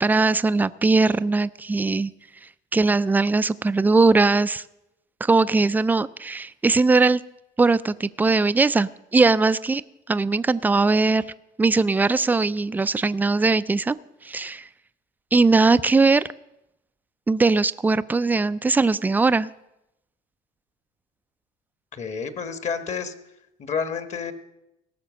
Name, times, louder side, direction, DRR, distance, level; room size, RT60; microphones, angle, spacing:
voice 1, 0.0-2.1 2.7-4.6 5.2-7.2 7.6-9.8 10.1-11.2 11.6-14.0 14.2-14.7 15.3-16.2 17.3-19.5, right 3 dB, 10° right, 15 dB, 0.4 m, -20 dB
voice 2, 21.9-23.1 23.6-24.3, left 6 dB, 40° left, 10 dB, 1.4 m, -29 dB
17.5 x 6.6 x 6.3 m, 0.88 s
supercardioid pair, 105°, 18 cm